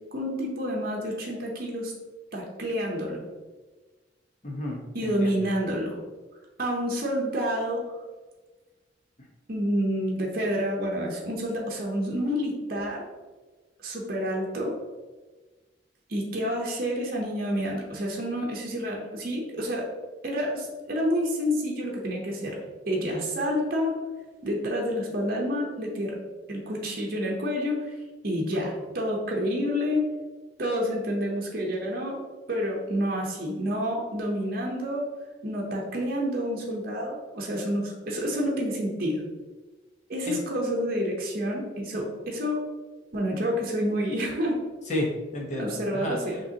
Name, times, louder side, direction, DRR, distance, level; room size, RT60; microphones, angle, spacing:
voice 1, 0.1-1.9 2.3-3.2 4.9-6.0 6.6-7.9 9.5-13.0 13.8-14.8 16.1-19.9 20.2-22.6 22.9-23.9 24.4-26.2 26.5-27.9 28.2-30.0 30.6-32.2 32.5-35.1 35.4-39.2 40.1-42.6 43.1-44.6 44.9-45.0 45.6-46.4, equal, 50° right, -1 dB, 0.8 m, -28 dB
voice 2, 4.4-5.4 40.3-40.4 44.9-46.4, left 1 dB, 40° left, -1 dB, 0.9 m, -32 dB
5.3 x 3.0 x 2.8 m, 1.3 s
head